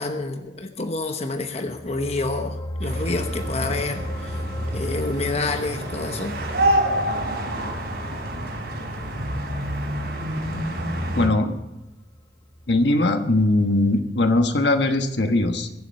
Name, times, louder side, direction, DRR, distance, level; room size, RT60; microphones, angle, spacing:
voice 1, 0.0-4.4 4.7-6.3, left 3 dB, 35° left, 6 dB, 1.0 m, -28 dB
sound 1, 1.6-12.2 12.5-12.7, equal, 20° left, 0.7 m, -35 dB
sound 2, 2.8-11.3, right 1 dB, 70° right, 3.8 m, -28 dB
voice 2, 11.1-11.5 12.7-15.8, left 2 dB, 75° left, 6 dB, 1.3 m, -20 dB
22.5 x 7.6 x 5.5 m, 0.94 s
head